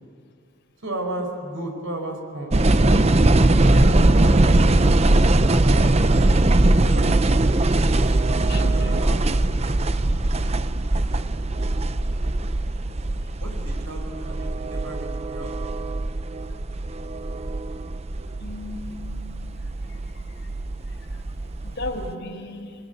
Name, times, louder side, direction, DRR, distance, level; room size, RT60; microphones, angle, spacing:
voice 1, 0.8-2.5 3.7-4.9 5.1-5.9 6.8-7.3 8.0-8.2 8.8-9.4 13.4-15.7, right 1 dB, 70° right, 4 dB, 5.2 m, -34 dB
sound 1, 2.5-22.1, right 2 dB, 30° right, 0.6 m, -21 dB
voice 2, 8.5-9.1 18.4-19.4 20.3-20.5 21.6-22.8, left 2 dB, 55° left, 2 dB, 4.3 m, -35 dB
27.0 x 20.5 x 9.6 m, 2.3 s
head